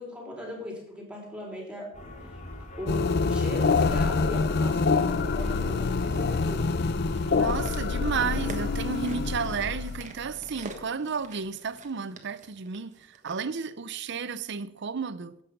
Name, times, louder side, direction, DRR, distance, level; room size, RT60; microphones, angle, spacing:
voice 1, 0.0-1.9 2.8-6.6, equal, 5° right, 3.7 m, -38 dB
sound 1, 1.9-9.7, left 1 dB, 35° left, 2.3 m, -42 dB
sound 2, 2.9-10.8, left 4 dB, 55° left, 0.5 m, -26 dB
sound 3, 7.1-13.4 14.2-14.3, right 3 dB, 40° right, 1.4 m, -46 dB
voice 2, 7.3-15.4, right 5 dB, 60° right, 0.7 m, -32 dB
11.5 x 8.1 x 5.3 m
head